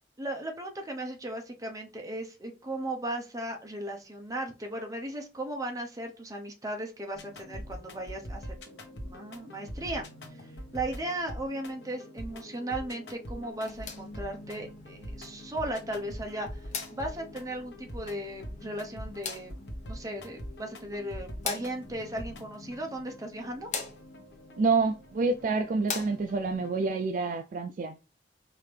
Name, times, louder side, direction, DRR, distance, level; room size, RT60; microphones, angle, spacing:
voice 1, 0.2-19.6 19.9-23.7, right 1 dB, 20° right, 0.9 m, -37 dB
sound 1, 7.1-26.9, equal, 75° left, 1.1 m, -44 dB
sound 2, 13.5-26.6, left 5 dB, 45° left, 0.9 m, -44 dB
voice 2, 24.6-28.0, right 4 dB, 45° right, 0.3 m, -28 dB
4.8 x 2.8 x 3.3 m
head